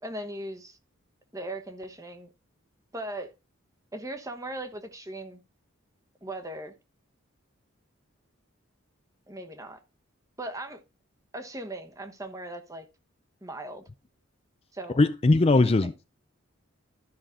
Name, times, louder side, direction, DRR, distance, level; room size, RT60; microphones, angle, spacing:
voice 1, 0.0-0.8 1.3-2.3 2.9-3.3 3.9-5.4 6.2-6.7 9.3-9.8 10.4-10.8 11.3-12.8 13.4-13.8 14.7-15.0 15.5-15.9, right 1 dB, 15° right, 1.0 m, -38 dB
voice 2, 15.0-16.0, left 2 dB, 30° left, 0.4 m, -20 dB
12.5 x 5.8 x 3.7 m
head